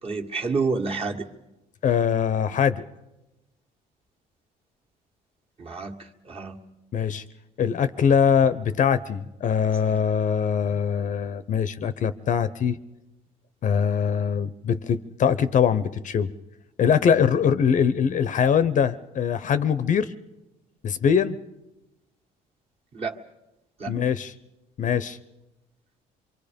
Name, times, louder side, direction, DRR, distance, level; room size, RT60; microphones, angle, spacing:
voice 1, 0.0-1.3 5.6-6.6 9.8-10.0 22.9-23.2 23.8-24.0, right 4 dB, 35° right, 1 dB, 1.8 m, -29 dB
voice 2, 1.8-2.8 6.9-7.2 7.6-12.8 13.6-16.3 16.8-20.1 20.8-21.4 23.9-24.3 24.8-25.2, left 7 dB, 50° left, 14 dB, 0.8 m, -22 dB
25.5 x 24.0 x 5.2 m, 0.97 s
cardioid pair, 110°, 17 cm